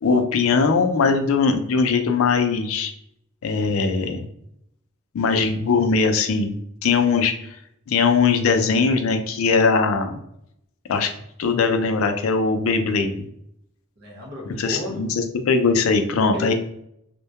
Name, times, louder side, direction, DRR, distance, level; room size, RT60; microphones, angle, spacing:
voice 1, 0.0-2.9 3.4-4.3 5.1-7.3 7.9-10.2 10.9-11.1 11.4-13.1 14.4-16.5, left 4 dB, 85° left, 7 dB, 0.4 m, -20 dB
voice 2, 14.0-15.1 16.3-16.5, left 1 dB, 55° right, -2 dB, 0.9 m, -34 dB
2.1 x 2.1 x 2.8 m, 0.75 s
head